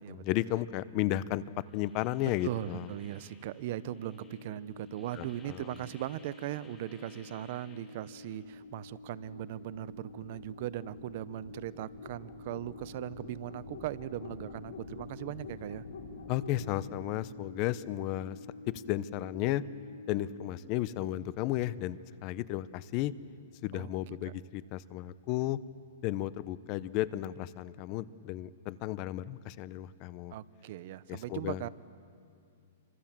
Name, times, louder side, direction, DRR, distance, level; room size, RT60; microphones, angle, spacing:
voice 1, 0.1-1.4 1.7-2.9 5.2-5.6 16.3-18.4 18.9-19.6 20.1-23.1 23.6-25.6 26.0-30.3 31.1-31.7, left 14 dB, 40° left, 17 dB, 0.8 m, -33 dB
sound 1, 1.7-8.4, left 3 dB, 10° left, 2.7 m, -61 dB
voice 2, 2.4-15.8 23.7-24.3 30.3-31.7, right 13 dB, 50° right, 17 dB, 0.8 m, -39 dB
sound 2, 3.6-20.5, left 3 dB, 85° left, 5.5 m, -48 dB
29.0 x 25.0 x 7.5 m, 2.4 s
hypercardioid pair, 145°, 0 cm